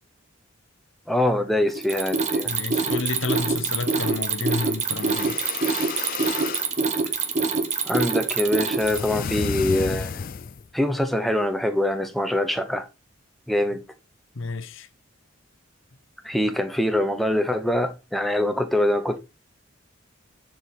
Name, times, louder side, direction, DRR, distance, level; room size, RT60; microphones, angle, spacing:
voice 1, 1.1-2.5 7.9-10.3 10.7-12.9 13.5-13.8 16.2-19.2, left 1 dB, ahead, 0.8 m, -24 dB
Mechanisms, 1.7-9.2, right 4 dB, 35° right, 1.3 m, -25 dB
voice 2, 2.5-5.4 14.4-14.9, left 3 dB, 70° left, 0.8 m, -30 dB
sound 1, 4.9-6.7 8.8-10.7, left 6 dB, 45° left, 0.3 m, -31 dB
9.6 x 4.9 x 4.2 m
head